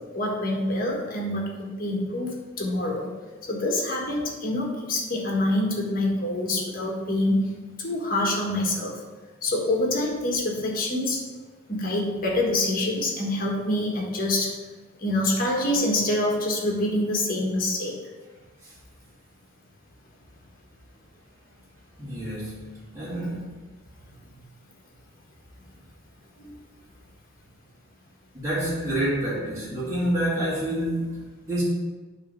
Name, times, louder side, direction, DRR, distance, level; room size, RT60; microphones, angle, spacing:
voice 1, 0.1-3.1 3.5-7.5 7.8-9.0 9.4-11.2 11.7-14.5 15.0-17.9 26.4-26.5, left 1 dB, 45° left, -1 dB, 1.6 m, -26 dB
voice 2, 22.0-23.6 28.3-31.6, right 1 dB, 15° right, -11 dB, 2.2 m, -28 dB
8.8 x 3.5 x 5.6 m, 1.3 s
head